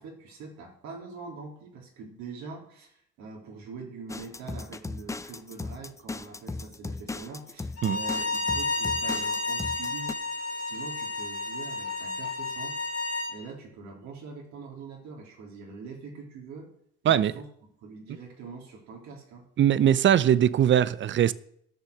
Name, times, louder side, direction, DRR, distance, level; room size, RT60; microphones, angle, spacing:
voice 1, 0.0-10.2 10.6-12.8 13.3-16.7 17.0-17.5 17.8-19.5, right 4 dB, 65° right, 3.5 m, -43 dB
sound 1, 4.1-10.1, left 3 dB, 10° left, 0.5 m, -37 dB
Bowed string instrument, 7.8-13.3, left 3 dB, 55° left, 2.8 m, -31 dB
voice 2, 19.6-21.3, right 10 dB, 40° right, 0.6 m, -21 dB
13.0 x 6.4 x 6.6 m
hypercardioid pair, 70°, 30 cm